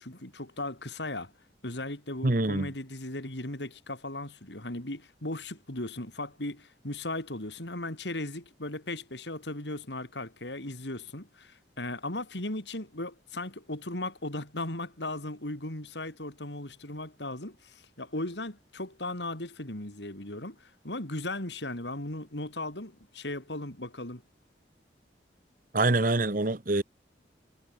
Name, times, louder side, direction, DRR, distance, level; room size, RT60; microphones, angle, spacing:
voice 1, 0.0-1.3 1.6-24.2, left 2 dB, 80° left, 4.4 m, -37 dB
voice 2, 2.2-2.7 25.7-26.8, right 2 dB, 50° right, 1.3 m, -25 dB
head